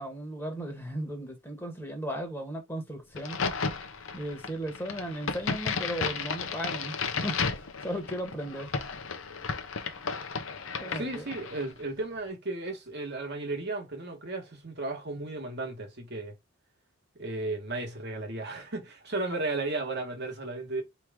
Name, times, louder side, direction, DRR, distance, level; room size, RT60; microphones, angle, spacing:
voice 1, 0.0-3.4 4.1-7.0 7.2-7.4 7.8-8.8 10.8-11.3, right 1 dB, 10° left, 1.4 m, -36 dB
Crack, 3.1-11.7, left 5 dB, 65° left, 0.8 m, -33 dB
voice 2, 10.9-16.3 17.1-20.8, right 2 dB, 50° right, 1.4 m, -34 dB
4.7 x 3.1 x 3.6 m
head